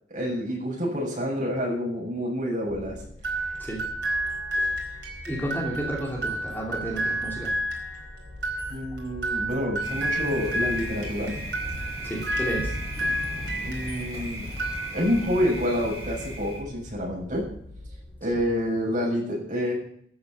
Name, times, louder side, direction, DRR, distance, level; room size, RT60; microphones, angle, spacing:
voice 1, 0.1-3.0 8.7-11.3 13.6-14.5 14.9-17.4 18.2-19.7, equal, 45° right, -3 dB, 7.7 m, -28 dB
sound 1, 2.7-18.6, left 1 dB, 85° left, 4.8 m, -43 dB
sound 2, 3.2-14.1 14.5-15.3, right 1 dB, 75° right, 4.2 m, -31 dB
voice 2, 5.3-7.5 12.0-12.7, right 1 dB, 10° left, -2 dB, 2.9 m, -32 dB
Thunder, 9.8-16.6, right 1 dB, 20° right, 5.3 m, -36 dB
13.5 x 7.8 x 8.6 m, 0.65 s
head